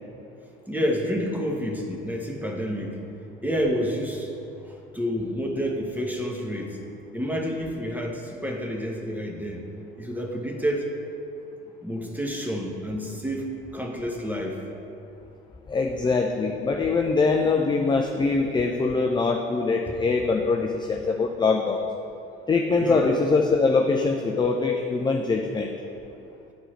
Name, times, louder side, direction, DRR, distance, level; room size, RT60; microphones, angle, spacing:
voice 1, 0.7-3.0 3.4-4.3 4.7-6.8 7.1-9.6 10.0-10.9 11.8-14.6 22.8-23.2, equal, 5° right, 0 dB, 1.2 m, -29 dB
voice 2, 15.7-21.8 22.5-25.7, left 4 dB, 15° left, 2 dB, 0.5 m, -23 dB
10.5 x 4.5 x 4.4 m, 2.8 s
figure-of-eight pair, 60°, 29 cm